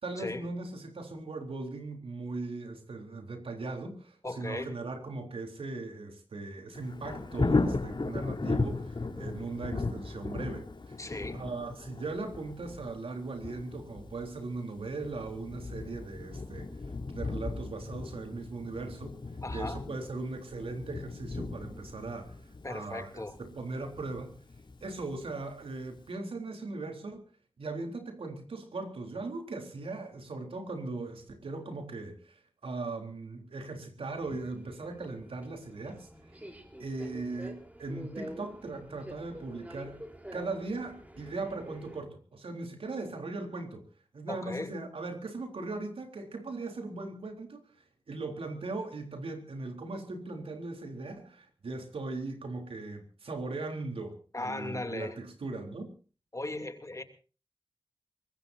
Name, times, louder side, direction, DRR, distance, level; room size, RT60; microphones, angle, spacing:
voice 1, 0.0-10.9 11.3-16.7 17.1-19.2 19.5-24.3 24.8-27.3 27.6-36.1 36.8-40.0 40.3-43.8 44.1-47.6 48.1-54.2 54.4-55.9, right 3 dB, 90° right, 5 dB, 3.7 m, -39 dB
voice 2, 4.2-4.7 11.0-11.4 19.4-19.8 22.6-23.4 44.3-44.7 54.3-55.2 56.3-57.0, left 2 dB, 35° left, 7 dB, 2.8 m, -37 dB
Thunder, 6.7-25.5 26.0-26.1, left 3 dB, 60° left, 3.8 m, -36 dB
Subway metro underground, 34.1-42.0, right 1 dB, 15° right, 3.9 m, -47 dB
24.0 x 20.5 x 2.7 m, 0.37 s
cardioid pair, 50°, 9 cm